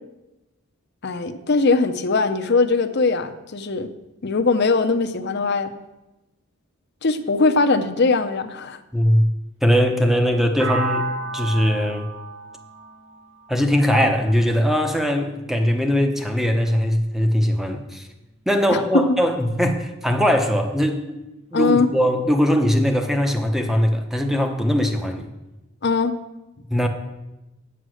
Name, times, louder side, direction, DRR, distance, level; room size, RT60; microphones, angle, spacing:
voice 1, 1.0-3.9 4.2-5.7 7.0-8.8 18.7-18.8 21.5-21.9 25.8-26.2, left 4 dB, 50° left, 8 dB, 0.7 m, -20 dB
voice 2, 8.9-9.3 9.6-11.1 11.3-12.1 13.5-18.1 18.5-21.2 21.5-25.3 26.7-26.9, equal, ahead, 5 dB, 0.8 m, -20 dB
sound 1, 10.6-14.5, right 3 dB, 65° right, 1.7 m, -31 dB
8.5 x 7.8 x 6.4 m, 1.0 s
head